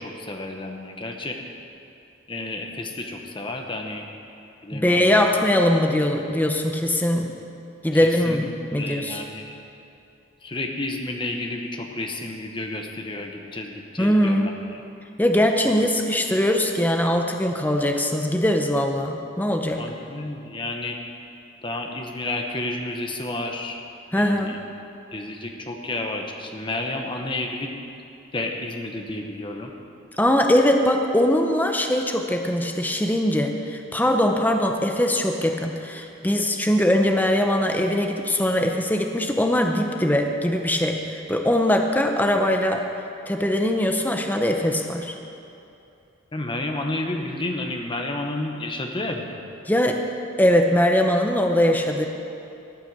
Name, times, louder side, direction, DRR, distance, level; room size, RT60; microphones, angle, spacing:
voice 1, 0.0-1.4 2.3-4.1 4.6-5.1 8.0-8.5 8.8-9.6 10.4-14.5 15.6-15.9 19.8-21.0 21.6-23.8 24.1-24.6 25.1-27.8 28.3-29.7 46.3-49.3, left 2 dB, 25° left, 3 dB, 1.1 m, -31 dB
voice 2, 4.7-7.4 7.8-9.2 14.0-14.5 15.2-19.8 24.1-24.6 30.2-42.8 43.3-45.2 49.7-50.0 50.4-52.1, left 1 dB, 10° left, 3 dB, 0.7 m, -21 dB
14.0 x 9.0 x 6.7 m, 2.7 s
head